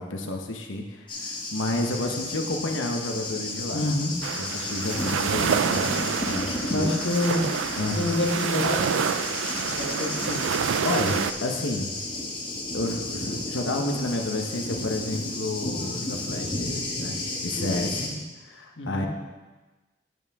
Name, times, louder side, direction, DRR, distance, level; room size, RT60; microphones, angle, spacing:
voice 1, 0.0-3.9 4.4-6.9 7.7-8.0 10.8-12.1 12.7-18.0 18.4-19.1, left 2 dB, 85° left, 2 dB, 1.0 m, -30 dB
Thunder, 1.1-18.1, left 2 dB, 25° left, 1.2 m, -33 dB
voice 2, 3.7-4.2 6.7-7.5 7.9-9.1 9.8-10.5 17.8-18.2 18.8-19.1, left 1 dB, 70° left, -1 dB, 1.5 m, -27 dB
sound 1, 4.2-11.3, right 7 dB, 85° right, 0.4 m, -28 dB
9.2 x 8.5 x 3.6 m, 1.2 s
head